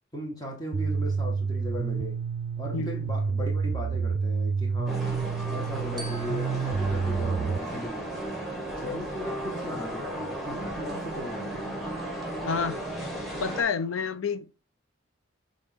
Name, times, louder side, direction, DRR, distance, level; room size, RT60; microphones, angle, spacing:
voice 1, 0.1-2.2 2.6-5.0 5.5-8.3 8.8-11.8, left 1 dB, 20° left, 1.4 m, -37 dB
sound 1, 0.7-7.6, right 5 dB, 70° right, 0.3 m, -29 dB
sound 2, 4.9-13.6, right 1 dB, ahead, 2.0 m, -34 dB
Glockenspiel, 6.0-8.5, right 1 dB, 20° right, 0.7 m, -48 dB
voice 2, 12.4-12.8 13.4-14.5, left 5 dB, 90° left, 0.5 m, -29 dB
7.1 x 3.8 x 3.5 m
head